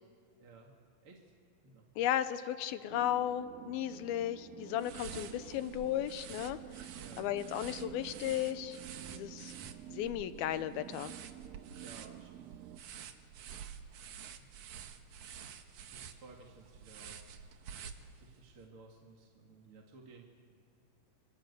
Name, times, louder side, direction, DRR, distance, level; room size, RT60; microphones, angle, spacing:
voice 1, 0.4-0.8 1.0-1.3 1.6-1.9 6.9-7.3 11.8-12.6 14.4-14.5 15.9-17.2 18.2-20.2, right 3 dB, 40° right, 0 dB, 2.5 m, -56 dB
voice 2, 2.0-6.9 7.2-8.8 9.1-9.5 9.9-11.1, left 12 dB, 85° left, 12 dB, 2.7 m, -35 dB
sound 1, 2.9-12.8, right 13 dB, 80° right, 2.7 m, -50 dB
sound 2, 4.8-18.5, right 7 dB, 65° right, 2.3 m, -49 dB
27.0 x 26.0 x 8.4 m, 2.3 s
omnidirectional pair, 4.3 m